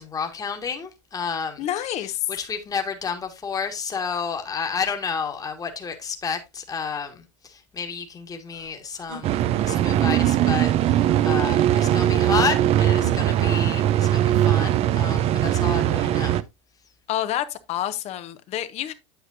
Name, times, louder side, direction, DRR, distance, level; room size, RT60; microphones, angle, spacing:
voice 1, 0.0-1.6 2.4-9.3 9.6-16.4, left 5 dB, 25° left, 1.7 m, -31 dB
voice 2, 1.6-2.3 17.1-18.9, left 12 dB, 45° left, 1.1 m, -28 dB
sound 1, 8.5-9.9 10.5-11.6 12.8-13.8 15.2-16.1, right 2 dB, 80° right, 4.0 m, -44 dB
sound 2, 9.2-16.4, right 12 dB, 40° right, 0.6 m, -20 dB
8.2 x 8.2 x 2.6 m
hypercardioid pair, 100°, 15 cm